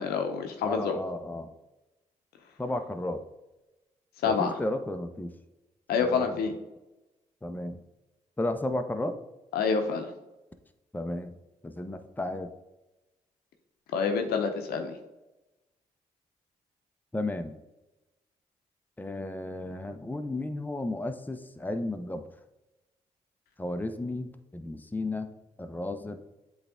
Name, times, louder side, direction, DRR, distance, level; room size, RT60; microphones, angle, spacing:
voice 1, 0.0-1.0 4.2-4.5 5.9-6.5 9.5-10.1 13.9-14.9, left 5 dB, 80° left, 5 dB, 0.7 m, -27 dB
voice 2, 0.6-1.5 2.6-3.2 4.3-5.3 6.0-6.4 7.4-7.8 8.4-9.2 10.9-11.4 11.6-12.5 17.1-17.6 19.0-22.3 23.6-26.2, left 1 dB, 10° left, 7 dB, 0.7 m, -33 dB
7.9 x 3.4 x 3.6 m, 0.99 s
hypercardioid pair, 40°, 16 cm